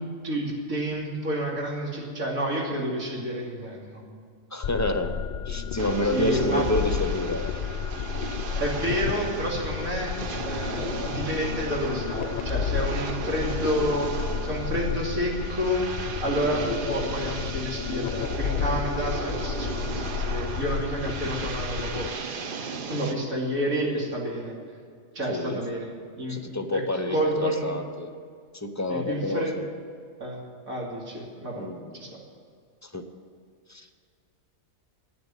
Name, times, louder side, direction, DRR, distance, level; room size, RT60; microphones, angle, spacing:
voice 1, 0.0-4.0 6.0-6.6 8.6-10.1 10.4-15.8 16.2-22.3 22.9-24.5 25.1-26.4 26.7-26.8 27.1-27.8 28.9-29.6 30.2-30.4 30.7-31.7 31.9-32.2, equal, 85° right, -3 dB, 3.1 m, -29 dB
voice 2, 4.5-5.2 5.5-7.5 25.3-25.6 26.3-28.1 28.5-29.6 31.6-31.9 32.8-33.0 33.7-34.0, left 1 dB, 15° left, 7 dB, 0.6 m, -29 dB
sound 1, 4.6-22.1, left 8 dB, 75° left, 0.4 m, -32 dB
sound 2, 5.8-23.1, right 4 dB, 50° right, 0.8 m, -36 dB
11.5 x 9.6 x 9.0 m, 2.2 s
omnidirectional pair, 1.4 m